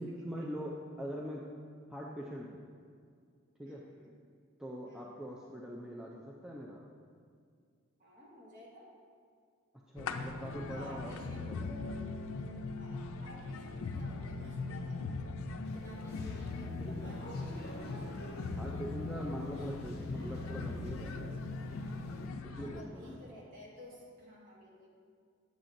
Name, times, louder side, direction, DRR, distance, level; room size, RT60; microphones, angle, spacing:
voice 1, 0.0-1.5 1.9-2.6 3.6-3.8 4.6-6.8 9.9-11.7 18.5-21.4 22.4-23.2, equal, 5° right, -4 dB, 0.4 m, -42 dB
voice 2, 3.6-4.1 4.8-5.1 8.0-8.9 10.7-12.0 12.7-15.1 15.4-18.3 18.6-19.3 22.5-24.9, equal, 40° right, -5 dB, 1.6 m, -54 dB
sound 1, 10.0-22.8, left 3 dB, 85° left, 0.4 m, -40 dB
sound 2, 14.3-14.6 16.0-16.1 17.0-17.3 18.3-18.4 19.1-19.2 19.5-19.8 21.0-21.2 23.0-23.3, left 1 dB, 55° right, 1.0 m, -56 dB
sound 3, 15.6-22.3, left 1 dB, 50° left, 0.7 m, -50 dB
8.1 x 7.3 x 2.6 m, 2.1 s
head